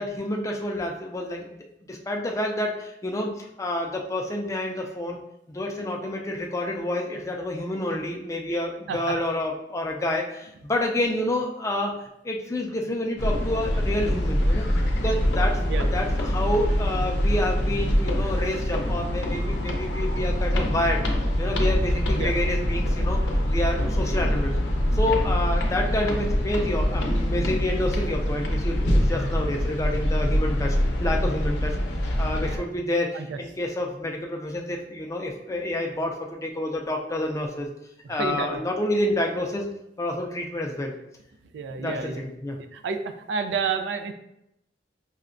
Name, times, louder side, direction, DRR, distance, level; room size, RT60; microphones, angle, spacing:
voice 1, 0.0-1.6 1.9-5.2 5.5-14.7 15.0-21.0 21.4-23.2 23.5-24.5 24.9-31.8 32.2-37.7 38.1-39.7 40.0-40.9 41.8-42.6, left 1 dB, 15° left, 1 dB, 0.4 m, -28 dB
sound 1, 13.2-32.6, equal, 85° left, 0.6 m, -24 dB
voice 2, 38.0-38.6 41.5-42.2 42.7-44.1, right 5 dB, 90° right, 8 dB, 0.3 m, -30 dB
5.6 x 2.1 x 2.5 m, 0.83 s
head